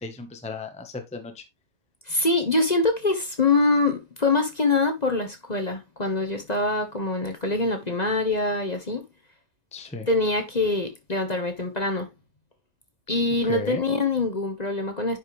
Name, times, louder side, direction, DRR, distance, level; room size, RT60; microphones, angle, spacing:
voice 1, 0.0-1.5 9.7-10.1 13.4-13.8, left 3 dB, 5° left, 1.0 m, -35 dB
voice 2, 2.0-9.1 10.1-12.1 13.1-15.2, left 3 dB, 30° left, 1.2 m, -24 dB
10.0 x 5.4 x 3.2 m
omnidirectional pair, 1.7 m